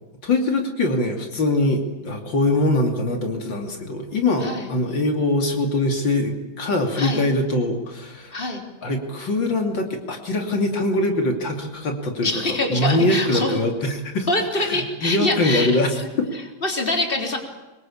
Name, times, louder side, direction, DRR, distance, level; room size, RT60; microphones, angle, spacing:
voice 1, 0.2-8.4 8.8-14.3 14.6-15.9 16.2-16.3, left 2 dB, 75° left, 4 dB, 3.4 m, -23 dB
voice 2, 12.2-13.5 14.3-17.4, left 2 dB, 25° left, 3 dB, 4.0 m, -25 dB
25.0 x 22.0 x 8.6 m, 1.2 s
omnidirectional pair, 2.0 m